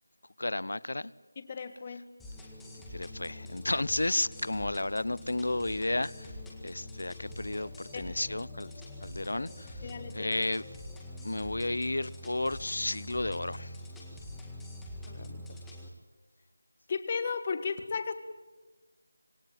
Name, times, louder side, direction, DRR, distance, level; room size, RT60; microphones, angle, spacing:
voice 1, 0.4-1.1 2.9-6.3 6.6-8.7 9.0-10.6 11.2-13.8, left 2 dB, 65° left, 0.9 m, -32 dB
voice 2, 1.3-2.1 7.9-8.2 9.8-10.4 15.1-15.4 16.9-18.1, left 5 dB, 20° left, 1.5 m, -35 dB
sound 1, 2.2-15.9, left 1 dB, 5° left, 1.8 m, -44 dB
26.5 x 19.5 x 9.3 m
figure-of-eight pair, 175°, 0 cm